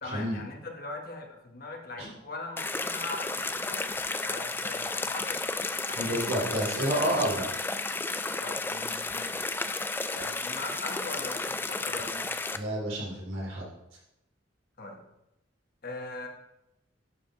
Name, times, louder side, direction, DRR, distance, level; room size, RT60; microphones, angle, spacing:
voice 1, 0.0-3.9 4.2-6.3 8.4-9.5 10.1-12.3 14.8-15.0 15.8-16.3, left 2 dB, 50° left, 2 dB, 1.5 m, -41 dB
sound 1, 2.6-12.6, left 3 dB, 10° left, 0.3 m, -33 dB
voice 2, 6.0-7.4 12.5-13.7, right 1 dB, 90° right, -4 dB, 3.6 m, -29 dB
11.0 x 5.2 x 4.8 m, 0.88 s
head